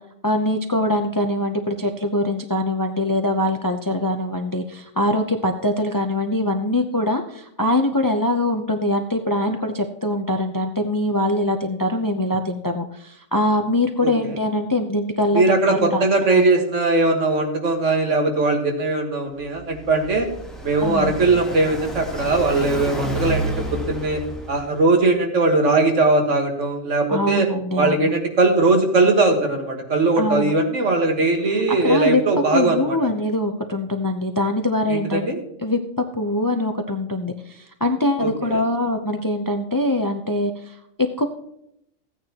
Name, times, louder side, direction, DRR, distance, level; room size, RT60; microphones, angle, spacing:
voice 1, 0.2-16.4 20.8-21.1 27.1-28.1 30.2-30.5 31.7-32.2 32.5-35.8 36.1-41.2, left 1 dB, 25° left, 5 dB, 0.5 m, -23 dB
voice 2, 14.0-14.4 15.3-20.3 20.6-24.2 24.5-27.5 27.8-33.0 34.9-35.4 38.2-38.6, right 2 dB, 75° right, 3 dB, 1.9 m, -20 dB
Car passing by, 19.4-24.9, right 1 dB, ahead, 1.4 m, -30 dB
15.5 x 9.2 x 2.9 m, 0.76 s
omnidirectional pair, 1.3 m